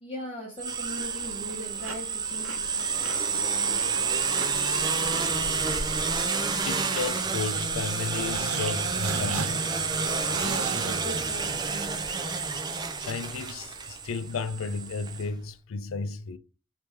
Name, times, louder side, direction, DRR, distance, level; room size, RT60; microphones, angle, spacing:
voice 1, 0.0-5.5 10.0-12.2, equal, 25° left, 0.8 m, -41 dB
sound 1, 0.6-15.2, right 5 dB, 20° right, 0.4 m, -29 dB
sound 2, 1.3-9.8, right 3 dB, 65° right, 1.0 m, -45 dB
voice 2, 6.6-9.6 12.7-16.4, left 4 dB, 65° left, 0.4 m, -33 dB
sound 3, 8.2-11.9, right 4 dB, 90° right, 0.6 m, -36 dB
3.4 x 2.9 x 3.2 m
head